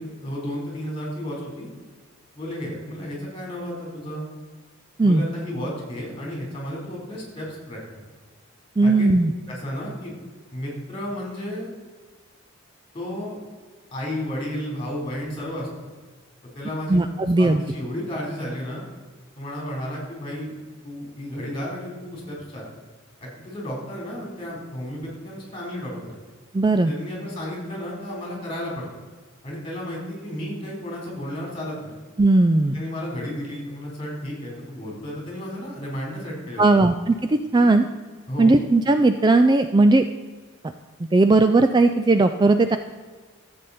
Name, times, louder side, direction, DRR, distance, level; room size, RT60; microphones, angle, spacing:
voice 1, 0.0-1.7 2.3-4.3 5.0-8.0 8.8-9.1 9.5-10.1 10.5-11.7 12.9-13.4 13.9-15.9 16.5-18.8 19.4-20.6 20.8-22.6 23.2-26.2 26.8-28.9 29.4-31.9 32.7-36.7 37.6-37.7 38.3-38.5, equal, 25° left, -2 dB, 3.7 m, -33 dB
voice 2, 8.8-9.3 16.9-17.6 26.5-26.9 32.2-32.8 36.6-37.9 38.4-40.0 41.0-42.8, right 2 dB, 20° right, 8 dB, 0.3 m, -17 dB
13.5 x 7.9 x 4.2 m, 1.5 s
head